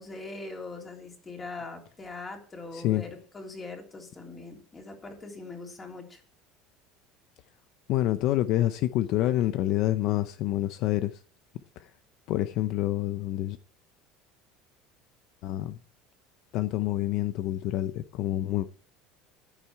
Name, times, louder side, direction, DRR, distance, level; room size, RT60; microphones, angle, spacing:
voice 1, 0.0-6.2, left 3 dB, 15° left, 3.4 m, -41 dB
voice 2, 2.7-3.0 7.9-11.2 11.8-11.9 12.3-13.6 15.4-15.8 16.5-18.7, left 14 dB, 50° left, 0.6 m, -27 dB
14.0 x 10.0 x 4.6 m
cardioid pair, 160°, 0 cm